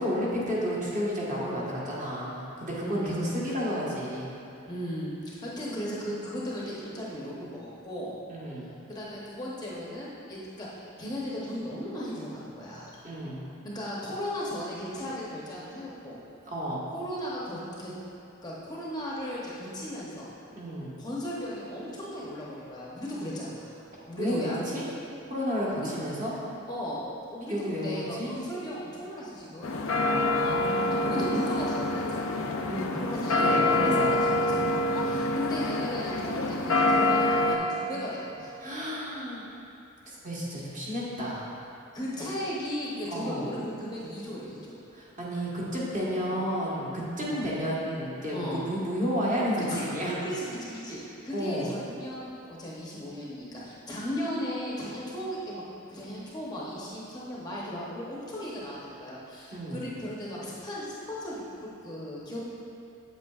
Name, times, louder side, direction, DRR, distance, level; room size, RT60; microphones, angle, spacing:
voice 1, 0.0-4.3 8.3-8.7 13.0-13.5 16.4-16.9 20.5-21.0 24.2-24.9 25.3-26.3 27.5-28.3 30.0-31.1 32.6-33.1 33.4-34.2 34.5-35.2 38.6-39.4 40.1-41.5 43.1-43.4 44.9-50.1 51.3-51.7 59.5-59.8, equal, 35° right, -7 dB, 1.4 m, -32 dB
voice 2, 2.7-3.2 4.7-8.2 8.9-13.0 13.6-16.2 16.9-17.9 18.4-20.3 21.0-23.8 24.1-24.8 25.8-25.9 26.7-27.0 27.3-29.9 30.9-32.5 32.9-38.5 41.9-44.8 46.2-46.4 47.2-47.5 48.3-48.6 49.6-51.0 51.2-55.6 55.9-62.4, equal, 20° left, -6 dB, 0.8 m, -36 dB
sound 1, 29.6-37.6, left 2 dB, 70° left, 0.5 m, -26 dB
8.0 x 7.6 x 2.4 m, 2.8 s
head